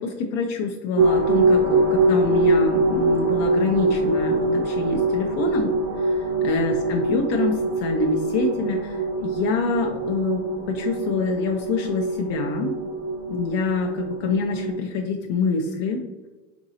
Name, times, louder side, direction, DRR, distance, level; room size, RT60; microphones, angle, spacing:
voice 1, 0.0-5.7 6.0-6.1 6.4-12.7 13.3-16.0, left 4 dB, 45° left, 2 dB, 0.4 m, -26 dB
sound 1, 1.0-14.8, right 2 dB, 50° right, 0.7 m, -23 dB
3.8 x 2.6 x 2.7 m, 1.2 s
supercardioid pair, 120°, 37 cm